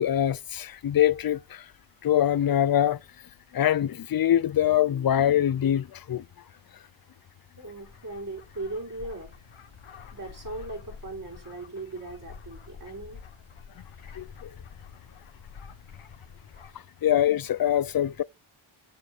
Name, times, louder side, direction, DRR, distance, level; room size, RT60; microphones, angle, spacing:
voice 1, 0.0-1.6 2.0-3.0 3.5-6.2 14.2-14.5 17.0-18.2, left 11 dB, 50° left, 0.5 m, -24 dB
sound 1, 7.6-16.7, left 6 dB, 80° left, 1.4 m, -48 dB
voice 2, 7.6-9.3 10.1-13.2 16.7-16.9, right 2 dB, 40° right, 4.3 m, -38 dB
7.7 x 7.7 x 6.6 m
wide cardioid pair, 110°, 49 cm